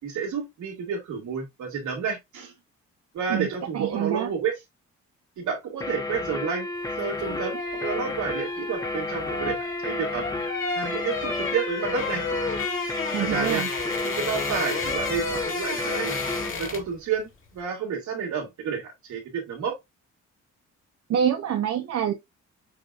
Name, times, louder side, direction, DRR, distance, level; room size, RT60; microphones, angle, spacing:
voice 1, 0.0-2.5 3.1-4.6 5.4-6.7 7.0-10.3 10.7-12.2 13.2-13.7 14.0-16.2 16.6-19.8, right 6 dB, 70° right, 2.4 m, -30 dB
voice 2, 3.7-4.3 13.1-13.7 21.1-22.1, right 9 dB, 55° right, 0.9 m, -26 dB
sound 1, 5.8-16.6, left 2 dB, 10° left, 0.9 m, -32 dB
sound 2, 7.0-17.0 17.3-17.5, left 4 dB, 40° left, 2.0 m, -32 dB
6.5 x 3.1 x 2.5 m
cardioid pair, 90°, 30 cm